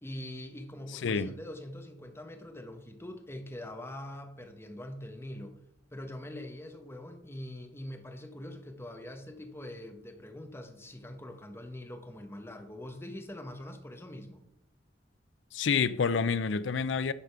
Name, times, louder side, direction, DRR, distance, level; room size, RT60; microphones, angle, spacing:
voice 1, 0.0-5.6 5.9-14.4, left 1 dB, 15° left, 1.0 m, -43 dB
voice 2, 1.0-1.3 15.5-17.1, left 5 dB, 70° left, 0.5 m, -28 dB
10.0 x 5.1 x 5.8 m
head